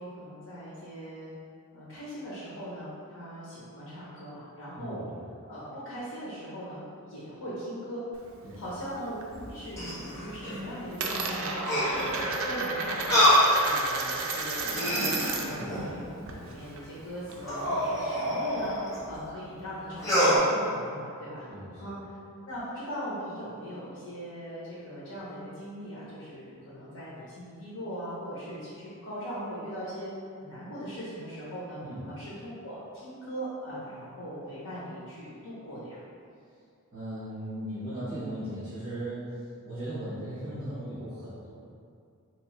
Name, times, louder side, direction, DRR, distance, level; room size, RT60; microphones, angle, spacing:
voice 1, 0.0-1.3 1.7-5.1 5.5-8.3 8.5-11.8 12.1-13.3 13.6-21.4 21.8-22.2 22.5-30.1 30.4-31.8 32.0-36.0, equal, 85° left, -8 dB, 0.8 m, -40 dB
Coin (dropping), 8.1-9.3 9.6-10.1 10.4-15.7 15.9-17.6, right 3 dB, 65° right, 0.4 m, -33 dB
sound 1, 9.3-10.6 11.6-12.2 13.1-13.5 14.1-14.2 14.6-16.0 17.4-19.0 20.0-20.4, equal, 15° left, 0.7 m, -26 dB
voice 2, 21.5-21.9 31.8-32.1 36.9-39.3 39.6-41.5, right 1 dB, 45° right, -14 dB, 1.3 m, -37 dB
3.5 x 2.9 x 3.0 m, 2.4 s
head